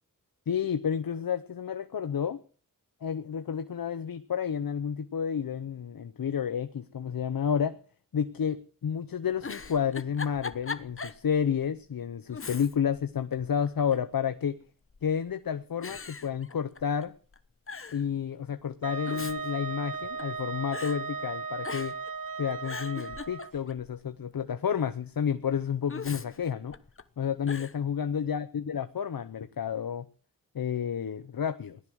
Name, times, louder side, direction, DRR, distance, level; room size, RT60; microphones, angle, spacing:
voice 1, 0.5-2.4 3.0-7.7 8.1-14.6 15.0-17.1 17.9-21.9 22.4-26.7 27.2-30.1 30.5-31.8, left 7 dB, 90° left, 10 dB, 0.9 m, -30 dB
Giggle, 9.4-11.2 11.6-11.7 12.3-13.0 13.3-14.1 14.9-15.3 15.8-17.1 17.3-17.4 17.7-18.0 18.8-20.4 20.7-21.0 21.6-22.1 22.5-23.9 25.9-27.0 27.5-27.8, left 4 dB, 40° left, 1.1 m, -40 dB
Wind instrument woodwind instrument, 18.8-23.5, right 5 dB, 75° right, 1.0 m, -36 dB
18.0 x 12.0 x 6.3 m, 0.42 s
wide cardioid pair, 75°, 34 cm